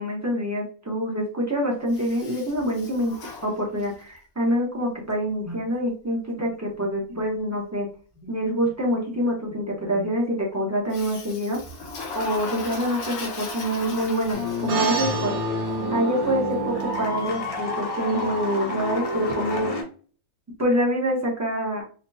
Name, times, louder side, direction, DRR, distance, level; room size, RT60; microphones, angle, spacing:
voice 1, 0.0-3.1 3.4-7.9 8.2-11.9 12.1-15.3 15.9-19.8 20.6-21.8, equal, 20° right, -2 dB, 0.4 m, -26 dB
Toilet flush, 1.9-4.1 10.9-15.0, left 4 dB, 80° left, 1.3 m, -37 dB
sound 1, 14.3-19.8, left 2 dB, 35° left, 0.5 m, -29 dB
sound 2, 14.7-19.3, right 6 dB, 80° right, 1.3 m, -32 dB
4.1 x 2.0 x 2.6 m, 0.41 s
omnidirectional pair, 1.6 m